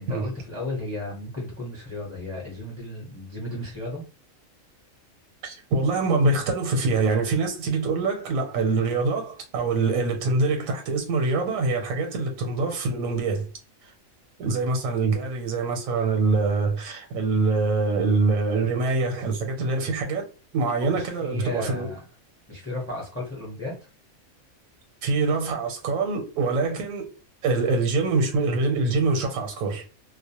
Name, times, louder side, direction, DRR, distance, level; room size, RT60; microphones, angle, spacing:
voice 1, 0.0-4.0 20.8-22.0 22.5-23.7, left 2 dB, 15° left, 0.6 m, -34 dB
voice 2, 5.4-13.5 13.8-13.9 14.4-20.3 20.5-21.9 25.0-27.1 27.4-29.8, right 3 dB, 80° right, 1.0 m, -24 dB
2.3 x 2.1 x 2.8 m
omnidirectional pair, 1.4 m